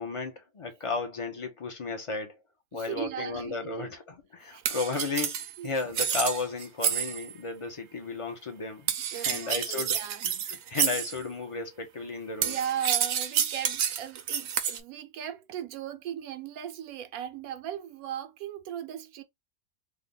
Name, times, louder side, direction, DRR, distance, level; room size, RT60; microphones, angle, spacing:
voice 1, 0.0-2.4 2.7-12.8, left 4 dB, 50° left, 0.3 m, -34 dB
voice 2, 2.7-3.9 4.5-4.6 5.6-5.7 9.1-10.3 12.4-19.2, right 9 dB, 85° right, 1.0 m, -37 dB
sound 1, 4.6-7.3 8.9-11.2 12.4-14.8, right 8 dB, 65° right, 0.7 m, -29 dB
3.2 x 2.1 x 3.7 m
omnidirectional pair, 1.5 m